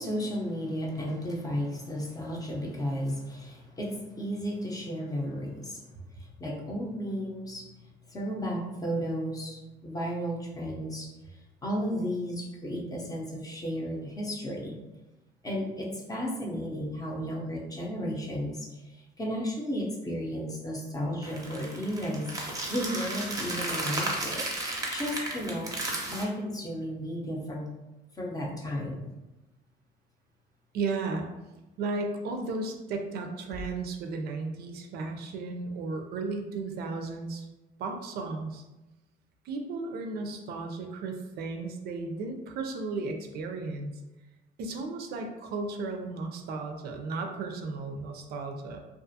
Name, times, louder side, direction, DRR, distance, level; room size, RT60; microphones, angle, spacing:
voice 1, 0.0-5.9 6.2-7.7 8.1-11.1 11.6-14.8 15.4-24.5 24.9-25.7 26.1-27.7 28.1-29.0, equal, 20° left, -2 dB, 0.6 m, -33 dB
sound 1, 21.2-26.2, right 1 dB, 20° right, 0.6 m, -34 dB
voice 2, 30.7-31.3 31.8-37.5 37.8-38.6 39.4-43.9 44.6-48.8, right 3 dB, 70° right, 4 dB, 0.4 m, -34 dB
2.4 x 2.4 x 2.6 m, 1.0 s
cardioid pair, 110°, 17 cm